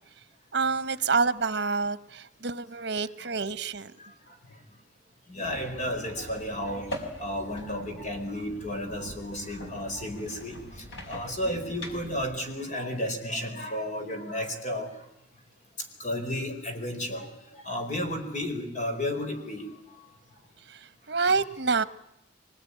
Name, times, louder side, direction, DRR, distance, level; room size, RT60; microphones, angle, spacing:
voice 1, 0.5-3.9 20.7-21.8, right 4 dB, 65° right, 14 dB, 1.1 m, -27 dB
voice 2, 5.3-6.9 7.2-10.6 11.1-14.9 16.0-17.3 17.5-19.7, left 1 dB, 45° left, 5 dB, 4.6 m, -32 dB
sound 1, 5.4-12.4, equal, 80° left, 5.6 m, -43 dB
24.5 x 21.0 x 10.0 m, 0.84 s
head